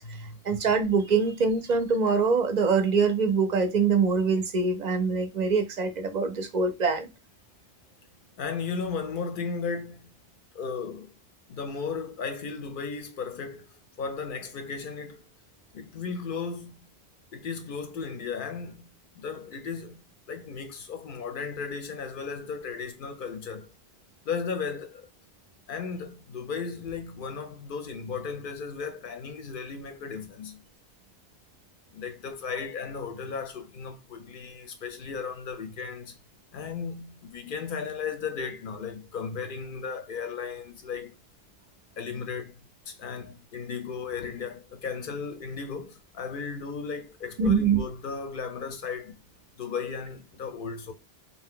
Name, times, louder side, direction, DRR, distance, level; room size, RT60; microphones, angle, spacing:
voice 1, 0.0-7.1 47.4-47.8, right 5 dB, 55° right, 0.5 m, -24 dB
voice 2, 8.4-10.2 10.5-11.1 11.5-15.3 15.7-16.9 17.3-18.9 19.2-23.7 24.2-25.1 25.7-30.6 31.9-36.2 36.5-41.1 42.0-49.1 49.6-50.9, left 5 dB, 60° left, 0.7 m, -35 dB
2.8 x 2.0 x 3.6 m
omnidirectional pair, 1.0 m